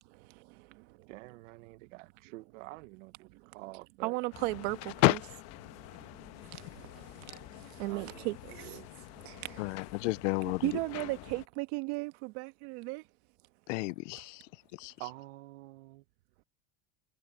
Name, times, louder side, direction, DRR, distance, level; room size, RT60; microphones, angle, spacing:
voice 1, 1.1-4.2 7.8-8.9 15.0-16.0, right 20 dB, 85° right, 1.3 m, -48 dB
voice 2, 4.0-5.2 7.8-8.7 9.2-9.7 10.4-13.0, right 23 dB, 65° right, 1.4 m, -35 dB
sound 1, 4.3-11.5, left 18 dB, 45° left, 1.2 m, -48 dB
voice 3, 9.6-10.7 13.7-14.9, left 24 dB, 85° left, 0.6 m, -30 dB
cardioid pair, 170°, 36 cm